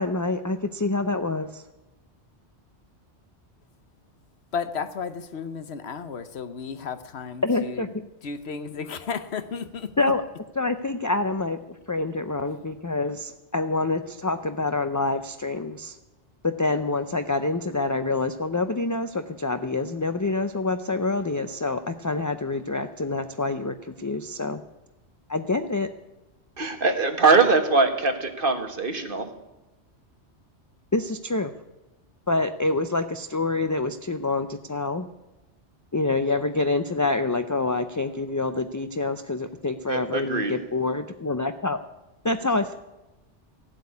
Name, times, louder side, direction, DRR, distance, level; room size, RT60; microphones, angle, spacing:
voice 1, 0.0-1.6 7.4-7.9 10.0-10.2 10.6-11.6 11.9-16.0 16.4-24.6 25.3-25.9 30.9-31.5 32.3-35.1 35.9-41.8 42.2-42.7, left 3 dB, 25° left, 9 dB, 0.4 m, -26 dB
voice 2, 4.5-7.9 8.2-9.9, left 6 dB, 65° left, 11 dB, 1.2 m, -33 dB
voice 3, 26.6-29.3 39.9-40.6, right 4 dB, 50° right, 6 dB, 1.6 m, -22 dB
16.0 x 8.0 x 9.6 m, 1.0 s
omnidirectional pair, 1.2 m